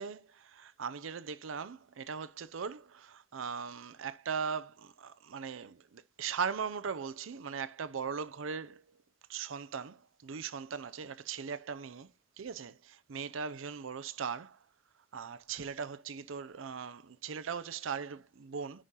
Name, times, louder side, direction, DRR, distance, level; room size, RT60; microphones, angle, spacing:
voice 1, 0.0-9.0 9.3-12.1 12.4-14.6 15.1-18.8, right 6 dB, 90° right, 0.5 m, -39 dB
9.9 x 3.7 x 4.0 m
head